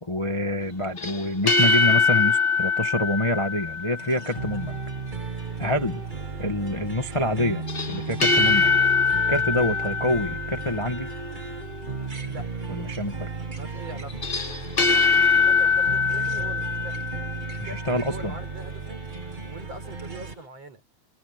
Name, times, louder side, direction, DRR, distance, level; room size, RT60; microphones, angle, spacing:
voice 1, 0.0-4.8 5.6-6.0 6.4-7.6 7.9-8.8 9.3-11.1 12.7-13.3 17.6-18.3, left 1 dB, 15° left, 1.5 m, -26 dB
sound 1, 1.0-4.3 7.7-11.0 14.1-17.7, left 4 dB, 40° left, 0.8 m, -23 dB
sound 2, 4.0-20.3, right 4 dB, 20° right, 1.3 m, -34 dB
voice 2, 13.6-14.2 15.3-17.0 17.5-19.0 19.4-20.8, right 3 dB, 55° right, 6.7 m, -42 dB
omnidirectional pair, 3.4 m